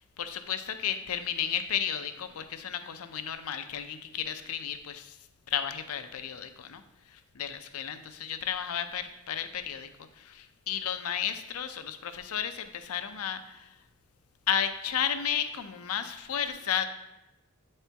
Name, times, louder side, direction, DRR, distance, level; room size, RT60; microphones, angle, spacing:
voice 1, 0.2-5.2 5.5-6.8 7.4-9.9 10.2-13.7 14.5-16.8, left 9 dB, 85° left, 9 dB, 0.5 m, -33 dB
8.1 x 4.3 x 3.4 m, 0.96 s
head